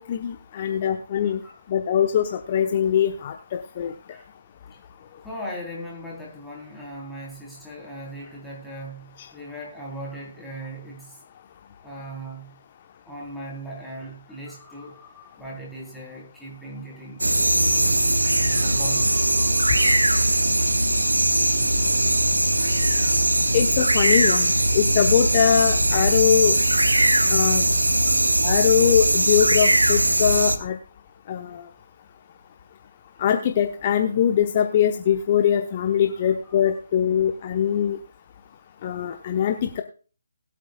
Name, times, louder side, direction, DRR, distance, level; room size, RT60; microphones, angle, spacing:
voice 1, 0.0-1.4 1.7-3.9 23.5-26.6 27.3-27.6 28.4-30.8 31.3-31.7 33.2-38.0 38.8-39.8, left 9 dB, 35° left, 6 dB, 0.9 m, -22 dB
voice 2, 0.5-0.9 1.2-1.6 4.1-4.3 4.7-4.8 5.2-11.2 11.8-12.6 13.0-17.2 18.3-20.0 22.6-23.1 27.5-28.1 36.1-36.7, right 1 dB, ahead, -5 dB, 3.4 m, -39 dB
sound 1, 17.2-30.6, right 1 dB, 80° right, 1.2 m, -20 dB
20.5 x 8.5 x 2.3 m, 0.37 s
figure-of-eight pair, 145°, 0 cm